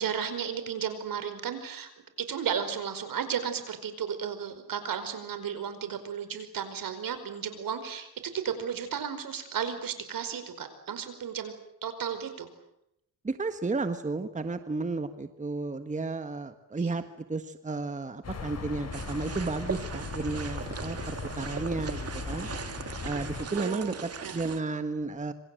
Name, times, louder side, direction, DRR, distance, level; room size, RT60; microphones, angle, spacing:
voice 1, 0.0-1.9 2.2-8.1 8.3-11.5 11.8-12.5 16.8-17.0 23.5-24.0 24.2-24.4, right 7 dB, 65° right, 10 dB, 5.1 m, -34 dB
voice 2, 13.2-22.5 23.0-25.3, right 3 dB, 20° right, 9 dB, 1.5 m, -33 dB
sound 1, 18.2-23.5, left 4 dB, 40° left, 5.9 m, -38 dB
sound 2, 18.9-24.6, right 6 dB, 40° right, 2.2 m, -39 dB
27.0 x 26.0 x 7.9 m, 0.80 s
cardioid pair, 110°, 37 cm